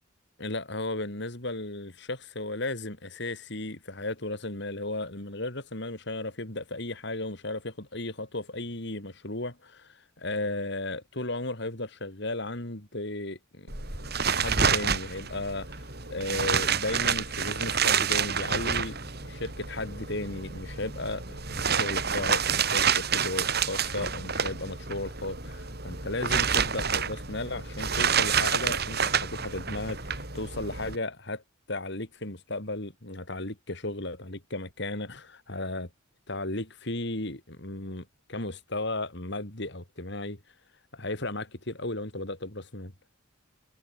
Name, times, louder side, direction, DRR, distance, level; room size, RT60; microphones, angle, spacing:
voice 1, 0.4-13.7 14.0-31.4 31.7-35.9 36.3-40.4 40.9-42.9, left 2 dB, 60° left, 3.6 m, -35 dB
sound 1, 13.7-31.0, right 6 dB, 50° right, 6.2 m, -28 dB
head